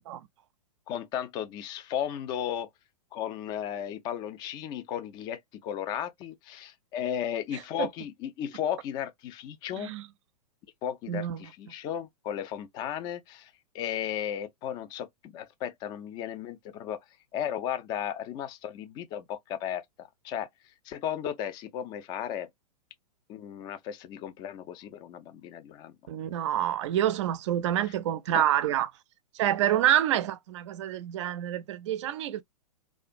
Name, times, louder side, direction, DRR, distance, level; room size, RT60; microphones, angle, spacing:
voice 1, 0.9-2.7 3.1-9.9 10.8-17.0 17.3-20.5 20.9-22.5 23.3-25.9 28.3-28.4, left 10 dB, 20° left, 0.3 m, -35 dB
voice 2, 9.8-10.1 11.1-11.5 26.1-28.9 29.3-32.4, right 11 dB, 45° right, 0.4 m, -27 dB
2.4 x 2.3 x 2.3 m
figure-of-eight pair, 110°, 21 cm